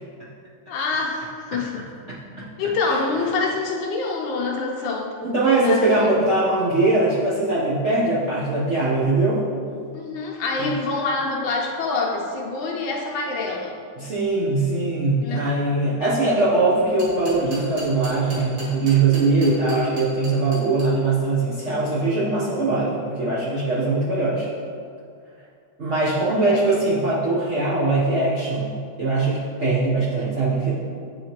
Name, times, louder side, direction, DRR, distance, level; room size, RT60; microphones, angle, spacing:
voice 1, 0.7-1.8 2.6-5.2 5.6-5.9 9.9-13.8 15.2-15.4 26.4-26.6, left 3 dB, 70° left, -1 dB, 1.3 m, -26 dB
voice 2, 5.2-9.4 10.6-10.7 14.0-24.5 25.8-30.7, right 2 dB, 55° right, -9 dB, 0.8 m, -21 dB
sound 1, 16.7-20.8, right 1 dB, 70° right, 2.3 m, -37 dB
9.2 x 3.5 x 2.9 m, 2.3 s
omnidirectional pair, 2.4 m